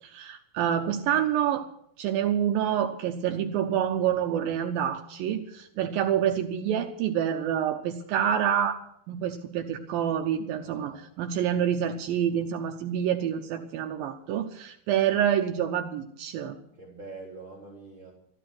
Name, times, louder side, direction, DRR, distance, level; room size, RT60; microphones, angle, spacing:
voice 1, 0.0-1.7 2.0-8.8 9.1-16.6, right 9 dB, 75° right, 5 dB, 2.6 m, -27 dB
voice 2, 10.6-11.1 16.7-18.1, right 3 dB, 30° right, -2 dB, 4.1 m, -45 dB
14.5 x 12.0 x 6.0 m, 0.71 s
omnidirectional pair, 4.3 m